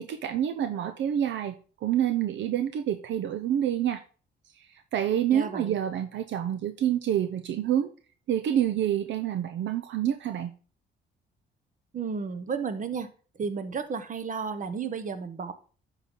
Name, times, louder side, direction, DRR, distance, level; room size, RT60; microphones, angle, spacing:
voice 1, 0.0-4.0 4.6-7.9 8.3-10.5, right 10 dB, 70° right, 7 dB, 0.6 m, -28 dB
voice 2, 5.3-5.8 11.9-13.1 13.4-15.5, right 5 dB, 40° right, 10 dB, 1.0 m, -32 dB
10.5 x 4.1 x 3.7 m, 0.39 s
cardioid pair, 90°, 20 cm